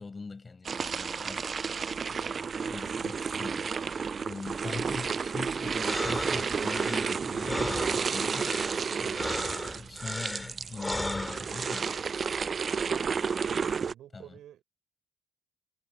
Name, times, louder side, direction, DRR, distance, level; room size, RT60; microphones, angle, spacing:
voice 1, 0.0-1.5 2.1-8.5 9.0-11.9 14.1-14.3, left 4 dB, 35° left, 6.3 m, -42 dB
sound 1, 0.6-13.9, right 5 dB, 45° right, 0.4 m, -31 dB
sound 2, 5.7-11.8, left 1 dB, 10° left, 4.6 m, -37 dB
voice 2, 12.9-14.6, right 12 dB, 75° right, 6.9 m, -46 dB
supercardioid pair, 60°, 0 cm